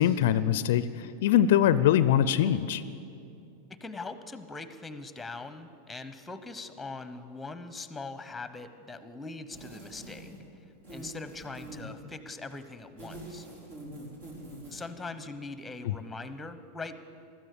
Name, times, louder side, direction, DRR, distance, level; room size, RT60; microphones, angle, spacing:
voice 1, 0.0-2.8 15.9-16.0, left 10 dB, 65° left, 15 dB, 0.4 m, -23 dB
voice 2, 3.8-10.3 10.9-13.5 14.7-16.9, left 3 dB, 10° left, 11 dB, 1.0 m, -41 dB
sound 1, 9.5-10.5 10.8-12.0 12.8-14.9, right 1 dB, 65° right, 4.2 m, -44 dB
15.0 x 13.0 x 6.8 m, 2.5 s
hypercardioid pair, 100°, 0 cm